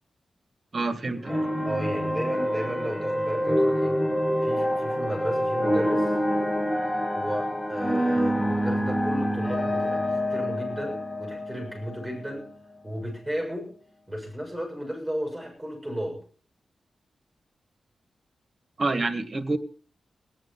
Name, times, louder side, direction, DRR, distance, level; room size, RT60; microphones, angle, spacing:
voice 1, 0.7-1.3 18.8-19.6, right 3 dB, 35° right, 6 dB, 1.8 m, -27 dB
sound 1, 1.2-12.5, equal, 10° left, 1.6 m, -26 dB
voice 2, 1.3-4.0 4.4-6.2 7.1-12.5 12.8-13.7 14.1-16.2, equal, 5° right, 1 dB, 7.0 m, -34 dB
18.5 x 10.5 x 5.7 m, 0.42 s
wide cardioid pair, 165°, 0 cm